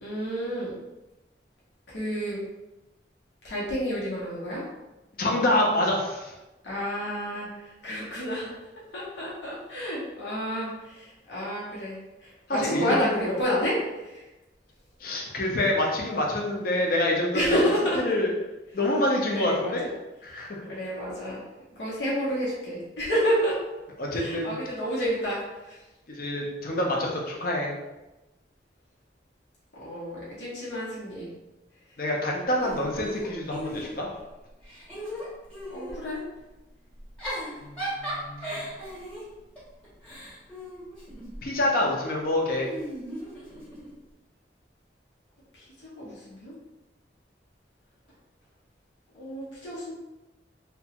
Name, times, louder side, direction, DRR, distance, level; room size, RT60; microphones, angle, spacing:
voice 1, 0.0-0.7 1.9-2.4 3.4-4.6 6.6-7.5 7.8-8.5 8.9-11.9 12.2-13.8 14.0-14.2 17.3-18.0 19.3-19.7 20.7-21.4 21.8-23.5 24.1-25.4 29.8-31.3 35.7-36.2 46.0-46.5 49.1-49.9, equal, 85° left, -7 dB, 0.9 m, -29 dB
voice 2, 5.2-6.3 12.5-13.1 15.0-17.6 18.0-18.3 18.7-19.9 20.2-20.6 24.0-24.6 26.1-27.7 32.0-34.1 37.6-38.6 41.4-42.7, left 1 dB, 55° left, -1 dB, 0.6 m, -27 dB
Giggle / Chuckle chortle, 32.6-34.2 34.6-36.0 37.0-41.5 42.5-43.9, equal, 5° left, 0.9 m, -37 dB
2.9 x 2.2 x 2.8 m, 1.0 s
head